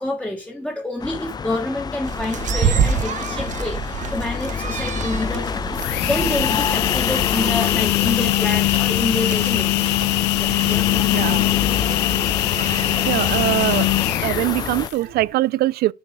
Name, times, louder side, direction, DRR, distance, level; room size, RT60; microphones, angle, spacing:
voice 1, 0.0-9.9 10.4-11.7, left 1 dB, 5° left, 1.4 m, -28 dB
sound 1, 1.0-14.9, left 6 dB, 25° left, 0.4 m, -29 dB
sound 2, 2.0-14.9, right 7 dB, 45° right, 0.8 m, -29 dB
sound 3, 5.7-15.1, left 20 dB, 90° left, 0.4 m, -21 dB
voice 2, 13.1-13.9 14.2-15.9, right 16 dB, 70° right, 0.4 m, -22 dB
7.2 x 6.8 x 4.8 m
cardioid pair, 110°, 17 cm